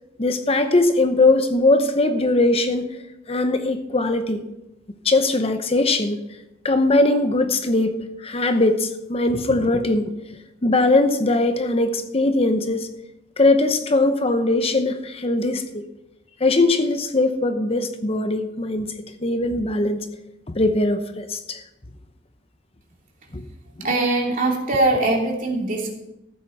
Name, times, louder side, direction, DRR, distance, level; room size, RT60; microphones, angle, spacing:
voice 1, 0.2-2.9 3.3-4.4 5.0-6.2 6.6-10.1 10.6-12.9 13.4-15.8 16.4-18.9 19.2-20.1 20.5-21.6 23.3-23.5 23.8-23.9, left 2 dB, 30° left, 8 dB, 0.8 m, -20 dB
voice 2, 23.8-25.9, right 2 dB, 45° right, -1 dB, 2.9 m, -21 dB
14.5 x 8.0 x 5.8 m, 0.93 s
head